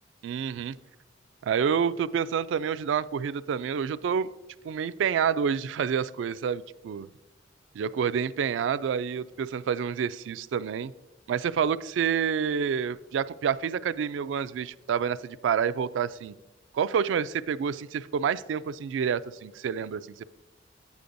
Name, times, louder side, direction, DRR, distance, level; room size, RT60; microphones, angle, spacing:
voice 1, 0.2-0.8 1.4-4.3 4.6-7.1 7.7-10.9 11.3-16.3 16.7-20.2, right 7 dB, 75° right, 15 dB, 0.3 m, -28 dB
9.9 x 8.2 x 2.6 m, 1.0 s
head